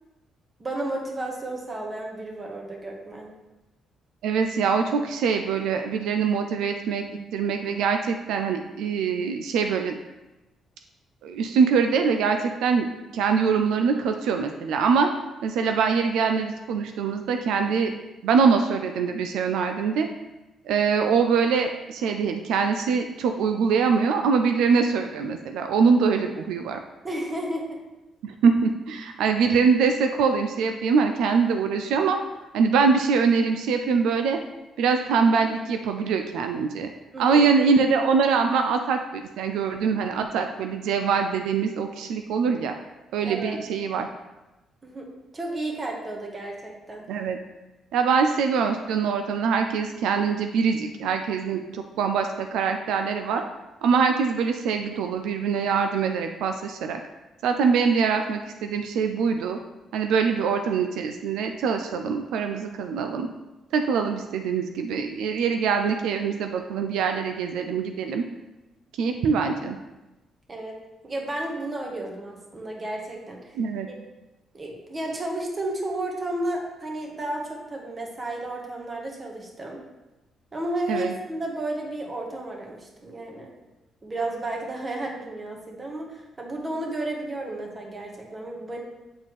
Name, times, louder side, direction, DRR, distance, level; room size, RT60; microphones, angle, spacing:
voice 1, 0.6-3.3 27.0-27.8 37.1-37.4 43.2-43.6 44.8-45.1 45.3-47.1 70.5-70.8 71.0-73.6 73.9-74.0 74.5-79.8 80.5-83.5 84.0-88.8, right 1 dB, 30° right, 0 dB, 1.4 m, -32 dB
voice 2, 4.2-7.0 7.3-10.0 11.2-12.9 13.1-15.1 15.4-17.9 18.2-20.1 20.7-26.8 28.2-32.2 32.5-34.4 34.8-36.9 37.2-42.8 43.1-44.1 47.1-47.4 47.9-53.4 53.8-57.0 57.4-59.6 59.9-63.3 63.7-68.2 68.9-69.8 73.5-73.9 80.9-81.1, right 5 dB, 85° right, 6 dB, 0.4 m, -23 dB
7.8 x 4.2 x 3.2 m, 1.0 s
cardioid pair, 90°, 0 cm